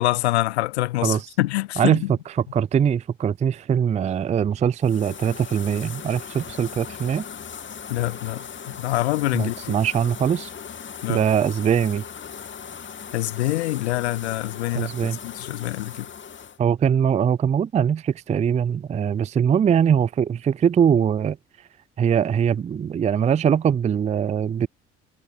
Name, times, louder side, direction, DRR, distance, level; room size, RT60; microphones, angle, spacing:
voice 1, 0.0-2.1 7.9-8.4 8.8-9.8 11.0-11.2 13.1-16.1, left 17 dB, 75° left, 0.7 m, -25 dB
voice 2, 1.8-2.2 2.5-7.3 9.3-10.5 11.1-12.0 14.7-15.2 16.6-21.4 22.0-24.7, right 8 dB, 20° right, 0.4 m, -22 dB
sound 1, 4.8-16.6, left 7 dB, 35° left, 2.3 m, -38 dB
figure-of-eight pair, 50°, 33 cm